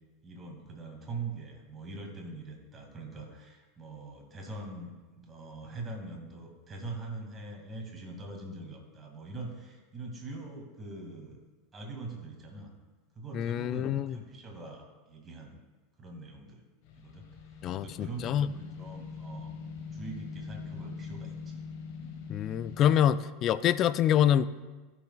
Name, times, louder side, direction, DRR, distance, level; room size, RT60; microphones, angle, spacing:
voice 1, 0.2-11.4 11.7-12.7 13.2-15.6 16.0-16.6 17.0-17.3 17.7-19.5 19.9-21.6 22.0-22.2, right 3 dB, 25° right, 1 dB, 2.1 m, -43 dB
voice 2, 13.3-14.1 17.6-18.5 22.3-24.4, left 10 dB, 40° left, 15 dB, 0.3 m, -26 dB
sound 1, 16.8-23.2, left 5 dB, 55° left, 1.2 m, -43 dB
15.5 x 6.1 x 2.3 m, 1.2 s
figure-of-eight pair, 85°, 0 cm